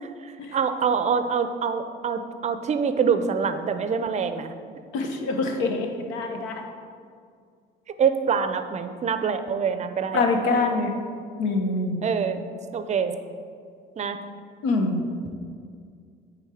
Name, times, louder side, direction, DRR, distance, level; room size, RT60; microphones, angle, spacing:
voice 1, 0.0-4.5 8.0-10.2 12.0-12.4 12.7-13.2 14.0-14.2, right 6 dB, 35° right, 9 dB, 0.5 m, -25 dB
voice 2, 4.9-6.6 10.1-10.9 11.4-12.0 14.6-15.0, left 3 dB, 80° left, 4 dB, 0.9 m, -25 dB
9.1 x 3.6 x 4.9 m, 2.2 s
cardioid pair, 100°, 20 cm